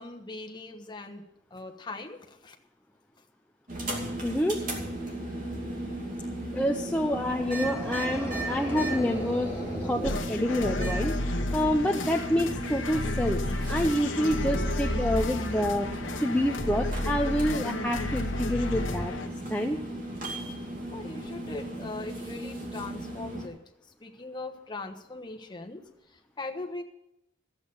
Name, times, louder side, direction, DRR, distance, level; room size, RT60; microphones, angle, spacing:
voice 1, 0.0-2.6 20.9-23.6 24.0-25.9 26.1-26.8, left 2 dB, 25° left, 2 dB, 1.2 m, -40 dB
sound 1, 3.7-23.5, right 1 dB, 45° right, 2.8 m, -36 dB
voice 2, 4.2-4.6 6.5-9.5 9.8-11.2 11.5-13.4 13.7-15.9 16.2-19.1 19.5-19.8, equal, 5° left, 1 dB, 0.6 m, -27 dB
sound 2, 7.0-10.9, equal, 10° right, 4.2 m, -37 dB
sound 3, 10.0-19.3, left 1 dB, 85° left, 1.1 m, -32 dB
14.5 x 8.2 x 7.0 m, 0.85 s
head